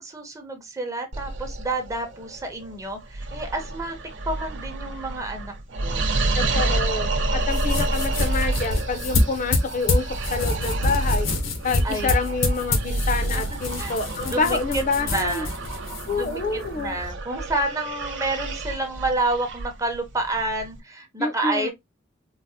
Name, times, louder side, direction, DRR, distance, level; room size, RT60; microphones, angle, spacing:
voice 1, 0.0-4.0 4.3-5.5 5.8-6.0 11.8-12.1 13.3-13.4 13.8-14.0 14.3-15.5 16.1-21.7, right 2 dB, 15° right, 0.7 m, -29 dB
sound 1, 1.1-20.8, right 2 dB, 65° right, 0.7 m, -29 dB
voice 2, 6.3-11.3 11.6-15.5 16.1-17.0 21.2-21.7, left 4 dB, 40° left, 0.5 m, -27 dB
sound 2, 7.4-17.1, left 2 dB, 85° left, 0.8 m, -27 dB
3.9 x 2.1 x 2.6 m
head